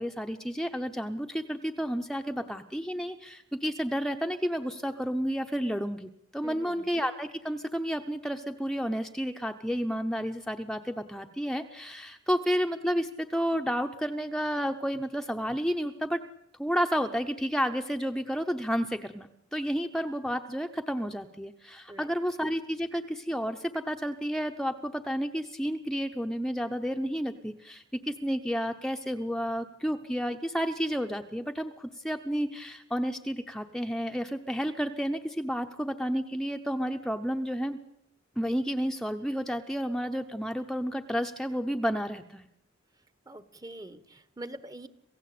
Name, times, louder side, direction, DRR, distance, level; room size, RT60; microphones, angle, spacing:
voice 1, 0.0-16.2 16.6-37.8 38.4-42.5, equal, 5° left, 5 dB, 0.9 m, -31 dB
voice 2, 6.4-6.9 21.9-22.1 43.3-44.9, right 1 dB, 20° right, 14 dB, 1.2 m, -44 dB
27.0 x 16.0 x 8.6 m, 0.79 s
head